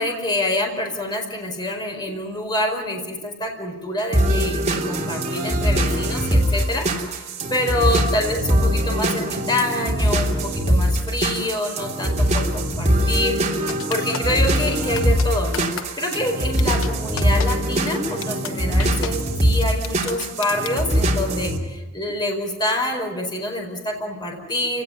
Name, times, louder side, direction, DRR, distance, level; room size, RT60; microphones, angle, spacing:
voice 1, 0.0-13.4 13.9-24.8, left 1 dB, 20° left, 2 dB, 4.9 m, -26 dB
sound 1, 4.1-21.6, equal, 35° right, 3.2 m, -22 dB
sound 2, 13.7-14.4 15.0-15.3 15.5-15.8 16.1-16.2 16.6-16.9 17.2-17.5 17.9-18.0 18.2-18.5 18.8-19.1 19.6-20.8, left 7 dB, 85° left, 1.1 m, -31 dB
29.0 x 18.0 x 9.5 m, 1.2 s
head